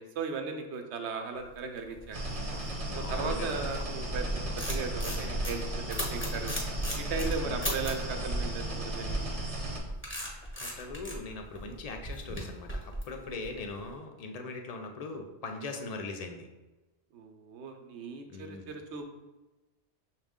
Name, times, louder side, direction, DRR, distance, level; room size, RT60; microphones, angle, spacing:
voice 1, 0.0-2.2 2.9-6.5 6.9-9.3 17.1-19.2, right 4 dB, 80° right, 5 dB, 0.9 m, -37 dB
sound 1, 1.6-4.0 4.3-8.1 9.3-13.8, equal, 15° left, 0.7 m, -37 dB
sound 2, 2.1-9.8, right 1 dB, 40° right, 0.7 m, -34 dB
voice 2, 2.8-3.7 7.4-7.6 10.6-16.5 18.3-18.7, left 3 dB, 55° left, 4 dB, 0.4 m, -40 dB
6.2 x 2.4 x 3.5 m, 1.1 s
omnidirectional pair, 1.2 m